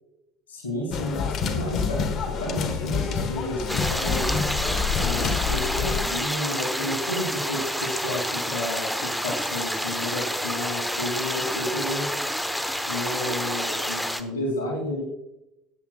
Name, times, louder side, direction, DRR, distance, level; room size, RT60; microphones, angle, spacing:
voice 1, 0.5-4.4 5.0-12.1 12.9-15.0, left 1 dB, 85° left, -1 dB, 2.3 m, -31 dB
sound 1, 0.9-6.1, left 6 dB, 50° left, 1.3 m, -27 dB
sound 2, 3.7-14.2, equal, 5° left, 0.9 m, -29 dB
18.0 x 8.3 x 2.3 m, 0.87 s
hypercardioid pair, 70°, 0 cm